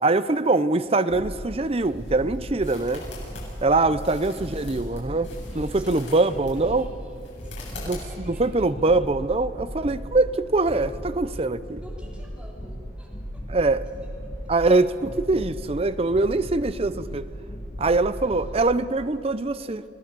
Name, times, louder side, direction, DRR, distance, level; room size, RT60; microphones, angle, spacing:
voice 1, 0.0-3.1 3.6-5.3 5.5-6.9 7.9-11.8 13.5-13.8 14.5-17.3 17.8-19.8, right 3 dB, 30° right, 13 dB, 0.6 m, -23 dB
sound 1, 1.1-18.5, equal, 20° left, 7.2 m, -37 dB
sound 2, 1.3-8.5, left 3 dB, 80° left, 7.8 m, -45 dB
voice 2, 5.3-8.7 11.8-13.4, equal, 5° right, -4 dB, 4.1 m, -50 dB
28.0 x 17.0 x 6.9 m, 2.4 s
head